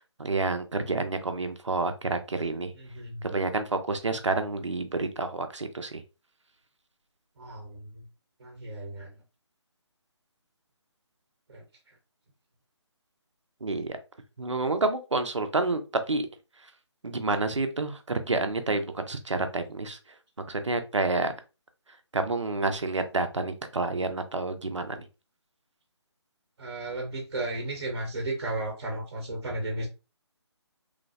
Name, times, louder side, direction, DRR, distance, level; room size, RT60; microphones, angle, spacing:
voice 1, 0.0-2.7 3.2-6.0 13.6-14.0 14.4-15.8 16.1-16.3 17.0-20.0 20.5-21.3 22.1-25.1, right 3 dB, 90° right, 8 dB, 0.6 m, -29 dB
voice 2, 2.8-3.3 7.4-8.0 8.4-9.1 11.5-11.6 26.6-29.9, right 2 dB, 55° right, 1 dB, 0.8 m, -34 dB
3.2 x 2.0 x 2.5 m, 0.29 s
figure-of-eight pair, 145°, 15 cm